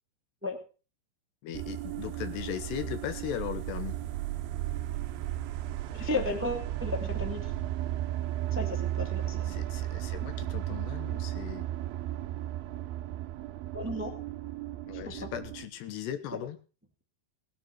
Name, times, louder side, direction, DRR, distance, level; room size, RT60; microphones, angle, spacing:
voice 1, 1.4-4.0 9.5-11.6 14.9-16.6, left 10 dB, 80° left, 10 dB, 3.3 m, -38 dB
sound 1, 1.5-15.7, right 13 dB, 75° right, 2.5 m, -35 dB
voice 2, 5.9-7.5 8.5-9.6 13.7-14.1 15.0-15.1, left 2 dB, 10° right, 3 dB, 0.8 m, -34 dB
19.5 x 10.0 x 4.5 m, 0.36 s
omnidirectional pair, 4.8 m